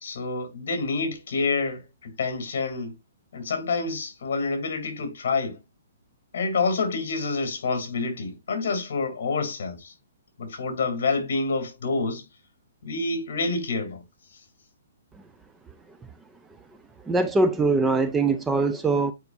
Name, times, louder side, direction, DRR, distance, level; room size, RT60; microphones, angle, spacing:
voice 1, 0.0-2.9 3.3-5.6 6.3-9.9 10.4-12.2 12.8-14.0, left 4 dB, 55° left, 2.6 m, -28 dB
voice 2, 17.1-19.1, right 3 dB, 5° right, 0.3 m, -22 dB
9.3 x 4.9 x 2.5 m
hypercardioid pair, 175°, 0 cm